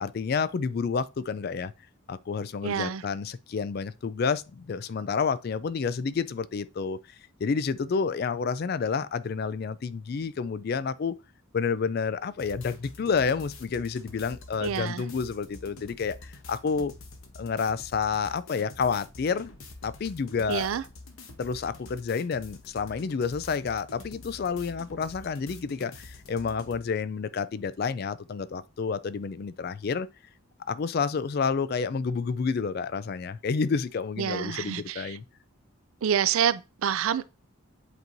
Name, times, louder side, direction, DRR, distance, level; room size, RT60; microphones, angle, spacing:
voice 1, 0.0-1.7 2.1-7.0 7.4-11.2 11.5-16.9 17.4-19.5 19.8-20.7 21.4-30.1 30.7-35.2, left 5 dB, 45° left, 0.3 m, -29 dB
voice 2, 2.6-3.0 14.6-15.0 20.5-20.8 34.2-35.2 36.0-37.2, right 8 dB, 75° right, 0.4 m, -27 dB
sound 1, 12.4-26.8, left 2 dB, 75° left, 1.1 m, -47 dB
8.1 x 4.5 x 2.6 m
head